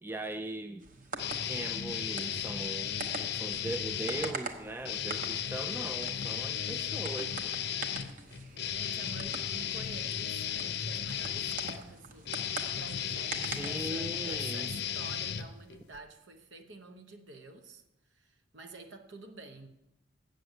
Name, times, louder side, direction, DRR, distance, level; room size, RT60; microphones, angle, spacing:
voice 1, 0.0-0.9 1.4-2.9 3.3-7.4 13.6-14.7, right 2 dB, 10° right, 8 dB, 0.3 m, -39 dB
sound 1, 0.8-14.4, right 3 dB, 40° right, 0.9 m, -45 dB
sound 2, 1.2-4.4 4.8-16.0, left 9 dB, 55° left, 0.6 m, -35 dB
voice 2, 8.6-12.3 12.8-17.8 18.1-19.7, right 3 dB, 65° right, 6 dB, 1.0 m, -49 dB
7.9 x 6.7 x 7.9 m, 0.89 s
head